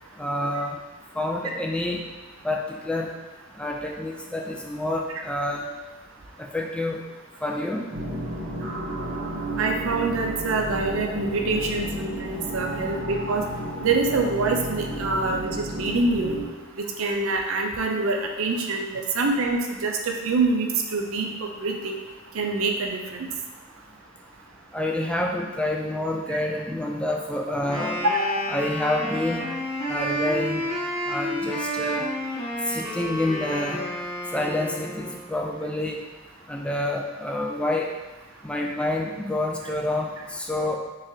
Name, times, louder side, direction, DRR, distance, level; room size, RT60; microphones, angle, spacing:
voice 1, 0.2-0.8 1.2-2.0 2.4-3.1 3.6-5.7 6.4-7.0 7.4-7.8 24.7-28.0 28.5-29.5 29.9-30.6 31.1-32.0 32.7-33.8 34.3-36.0 36.5-37.9 38.4-40.8, left 1 dB, 5° left, 0 dB, 0.3 m, -28 dB
sound 1, 7.9-16.5, right 1 dB, 45° right, 0.8 m, -32 dB
voice 2, 9.6-13.4 13.8-16.4 16.8-22.0 22.3-23.3 26.3-26.4 28.0-28.4, right 3 dB, 90° right, 3 dB, 0.5 m, -25 dB
Wind instrument woodwind instrument, 27.6-35.3, equal, 30° left, 1.1 m, -30 dB
3.8 x 3.1 x 2.7 m, 1.2 s
head